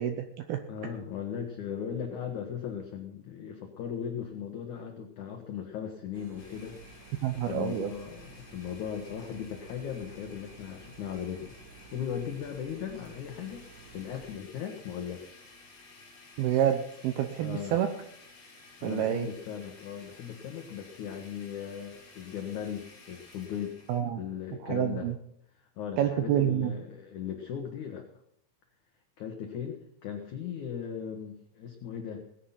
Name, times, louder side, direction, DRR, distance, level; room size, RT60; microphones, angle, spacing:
voice 1, 0.0-0.6 7.2-7.9 16.4-17.9 18.8-19.3 23.9-24.2 24.6-25.2 26.0-26.7, right 11 dB, 80° right, 7 dB, 2.2 m, -28 dB
voice 2, 0.7-6.8 7.3-15.4 17.4-17.8 18.8-23.8 24.2-25.1 25.5-28.1 29.2-32.2, left 8 dB, 70° left, 4 dB, 1.8 m, -38 dB
sound 1, 6.1-14.3, right 4 dB, 40° right, 3.0 m, -53 dB
Domestic sounds home sounds, 6.4-24.0, left 3 dB, 35° left, 3.7 m, -54 dB
18.5 x 9.9 x 5.7 m, 0.71 s
omnidirectional pair, 5.5 m